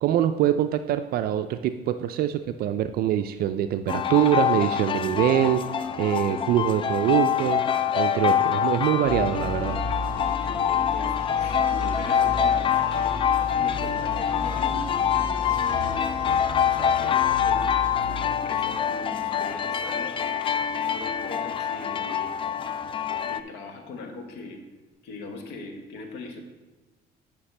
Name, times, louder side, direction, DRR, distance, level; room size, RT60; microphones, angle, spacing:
voice 1, 0.0-5.6 6.0-7.6 8.0-9.8, right 11 dB, 65° right, 9 dB, 0.4 m, -24 dB
sound 1, 3.9-23.4, left 8 dB, 30° left, 0.4 m, -25 dB
sound 2, 9.0-18.9, left 2 dB, 55° left, 2.8 m, -35 dB
voice 2, 10.4-14.9 15.5-20.3 20.8-22.3 23.2-24.6 25.0-26.4, left 3 dB, 85° left, 4 dB, 1.2 m, -41 dB
9.8 x 5.9 x 3.3 m, 1.2 s
cardioid pair, 110°, 17 cm